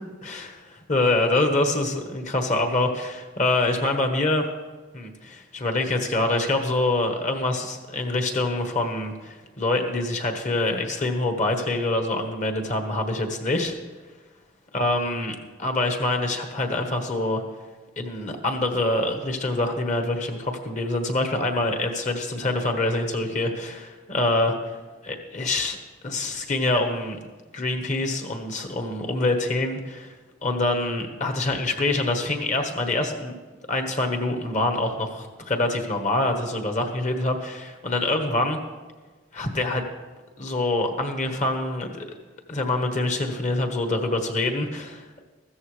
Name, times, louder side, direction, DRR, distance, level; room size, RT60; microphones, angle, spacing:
voice 1, 0.9-4.4 4.9-13.7 14.7-17.4 18.0-24.5 25.0-25.8 26.0-27.2 27.5-30.1 30.4-33.4 33.7-38.6 39.3-39.9 40.4-42.1 42.5-45.2, left 2 dB, 40° left, 4 dB, 1.4 m, -25 dB
15.0 x 13.5 x 3.4 m, 1.3 s
head